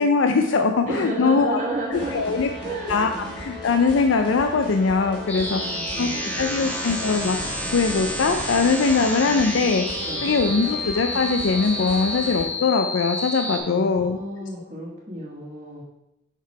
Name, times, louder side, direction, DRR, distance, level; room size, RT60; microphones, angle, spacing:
voice 1, 0.0-1.6 1.9-2.5 2.9-5.6 6.0-6.1 6.3-9.8 10.2-14.2, left 4 dB, 80° left, 6 dB, 0.4 m, -21 dB
voice 2, 0.9-2.3 2.6-3.1 5.3-6.7 10.1-10.2 13.5-15.8, right 1 dB, 35° right, -8 dB, 1.5 m, -32 dB
sound 1, 1.9-12.4, equal, 25° left, 2.7 m, -36 dB
sound 2, 5.3-13.6, left 1 dB, 5° left, 0.9 m, -30 dB
6.0 x 5.5 x 4.6 m, 0.87 s
head